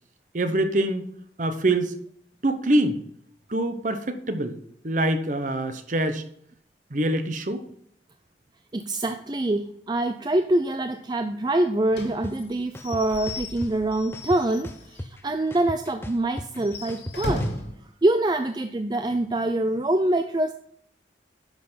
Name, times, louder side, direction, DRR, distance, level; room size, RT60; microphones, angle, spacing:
voice 1, 0.3-1.1 1.4-2.0 2.4-3.0 3.5-4.6 4.8-6.3 6.9-7.7, right 1 dB, 45° right, 9 dB, 1.0 m, -24 dB
voice 2, 8.7-17.5 18.0-20.5, right 1 dB, 25° right, 8 dB, 0.4 m, -25 dB
Slam / Squeak / Wood, 11.9-15.1 15.5-15.6 15.9-16.0 16.5-17.8, left 1 dB, 80° left, 2.4 m, -35 dB
sound 1, 12.2-12.3 12.7-13.7 14.1-15.2 15.5-17.6, left 1 dB, 15° left, 0.7 m, -36 dB
10.5 x 6.8 x 5.7 m, 0.67 s
head